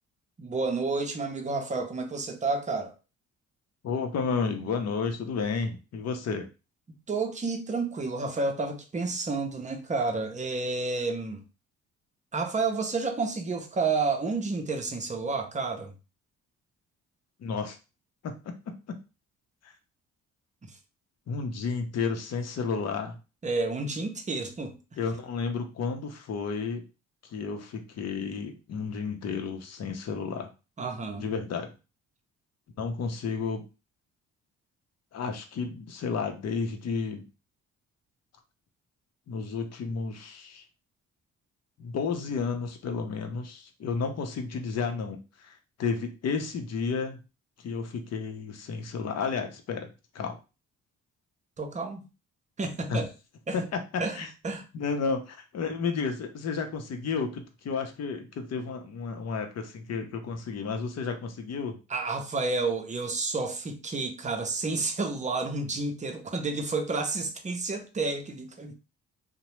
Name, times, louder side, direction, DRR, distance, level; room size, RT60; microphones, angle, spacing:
voice 1, 0.4-2.9 7.1-11.4 12.3-15.9 23.4-24.7 30.8-31.3 51.6-52.0 52.6-53.1 53.5-53.6 54.0-54.2 54.4-54.6 61.9-68.7, right 3 dB, 25° right, 0.6 m, -30 dB
voice 2, 3.8-6.5 17.4-17.8 18.2-18.5 18.9-19.0 19.6-19.7 21.3-23.2 25.0-26.8 27.2-30.5 31.2-31.7 32.8-33.6 35.1-37.2 39.3-40.6 41.8-47.2 47.6-49.9 50.1-50.4 52.9-53.0 53.5-54.3 54.7-61.8, left 5 dB, 55° left, 0.7 m, -32 dB
2.7 x 2.1 x 3.1 m
cardioid pair, 90°, 30 cm